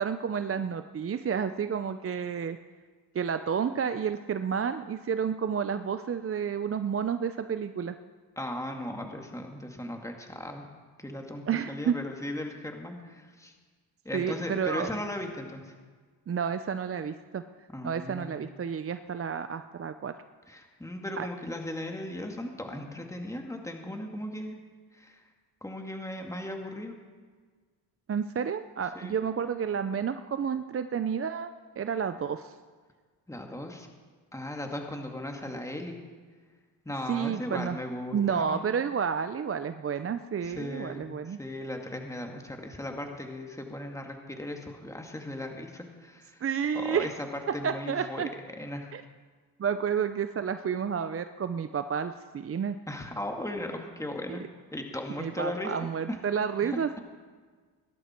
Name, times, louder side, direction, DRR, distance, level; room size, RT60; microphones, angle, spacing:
voice 1, 0.0-2.6 3.1-8.0 11.5-12.0 14.1-14.9 16.3-17.4 17.8-20.1 21.2-21.3 28.1-32.5 37.1-37.8 38.1-41.4 46.4-47.1 47.5-48.3 48.9-49.0 49.6-52.8 54.3-54.4 55.2-57.0, right 7 dB, 35° right, 10 dB, 0.6 m, -30 dB
voice 2, 8.4-10.6 11.0-13.5 14.0-15.8 17.7-18.3 20.5-24.6 24.9-25.2 25.6-26.9 28.9-29.2 33.3-33.9 34.3-35.9 36.9-38.6 40.4-46.4 46.9-47.1 47.5-48.2 48.6-48.9 52.9-54.4 54.7-55.7 56.1-56.2 56.6-57.0, left 1 dB, 5° left, 2 dB, 2.2 m, -37 dB
19.5 x 11.0 x 4.5 m, 1.5 s
cardioid pair, 75°, 43 cm